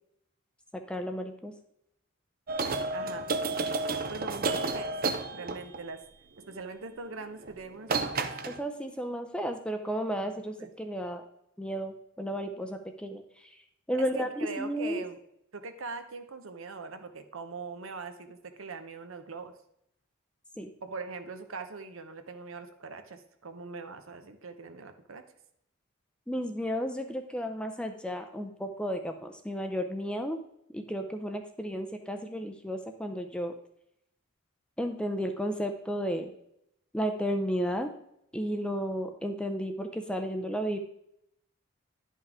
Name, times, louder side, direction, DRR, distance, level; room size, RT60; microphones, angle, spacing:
voice 1, 0.7-1.5 8.5-11.2 11.6-13.2 13.9-15.0 20.6-20.7 26.3-30.4 30.7-33.5 34.8-36.3 36.9-37.9 38.3-40.8, equal, 5° left, 6 dB, 0.5 m, -33 dB
sound 1, 2.5-5.9 7.4-7.6 7.9-8.6, right 3 dB, 45° right, 0.5 m, -31 dB
voice 2, 2.9-3.3 4.1-4.9 5.3-6.0 6.5-8.3 10.1-10.7 13.9-15.2 15.5-19.5 20.8-25.2, right 4 dB, 70° right, 8 dB, 0.8 m, -42 dB
10.5 x 5.6 x 3.6 m, 0.76 s
head